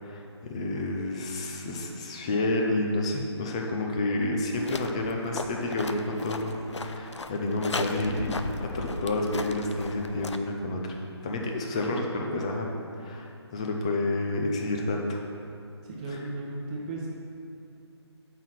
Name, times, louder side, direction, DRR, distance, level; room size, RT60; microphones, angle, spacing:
voice 1, 0.0-11.0 11.2-12.7 13.0-15.2, left 2 dB, 15° left, 1 dB, 0.5 m, -29 dB
sound 1, 4.5-10.4, left 3 dB, 90° left, 0.6 m, -37 dB
voice 2, 15.8-17.1, right 2 dB, 15° right, -4 dB, 1.1 m, -35 dB
7.2 x 5.8 x 6.2 m, 2.6 s
figure-of-eight pair, 165°, 15 cm